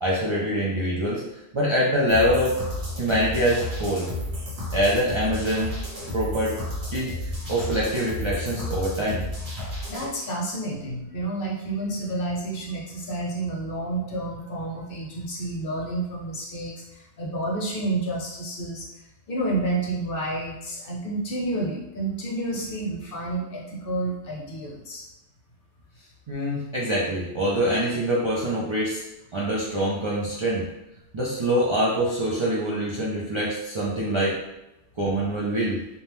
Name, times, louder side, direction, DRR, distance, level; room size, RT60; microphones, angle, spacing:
voice 1, 0.0-1.2 1.5-2.6 3.0-4.1 4.7-5.7 6.1-6.6 6.9-9.3 26.3-29.0 29.3-30.6 31.1-34.4 35.0-35.8, equal, 50° right, -6 dB, 0.3 m, -24 dB
sound 1, 2.1-10.1, left 1 dB, 70° right, 1.1 m, -32 dB
voice 2, 9.9-18.9 19.3-25.0, right 2 dB, 60° left, -3 dB, 0.9 m, -30 dB
2.7 x 2.2 x 3.3 m, 0.93 s
omnidirectional pair, 1.1 m